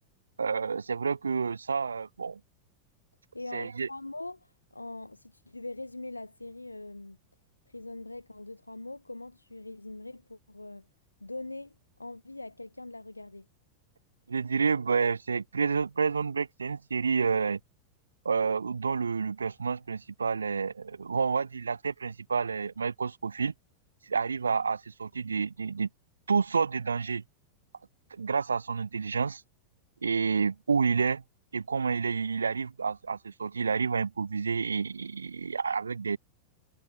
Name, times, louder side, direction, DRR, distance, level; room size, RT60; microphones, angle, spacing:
voice 1, 0.4-2.4 3.5-3.9 14.3-17.6 18.2-23.5 24.1-25.9 26.3-27.2 28.1-29.4 30.0-31.2 31.5-36.2, right 5 dB, 75° right, 0.6 m, -29 dB
voice 2, 3.3-7.2 7.7-10.9 11.2-13.5, left 2 dB, 85° left, 1.1 m, -42 dB
figure-of-eight pair, 90°, 0 cm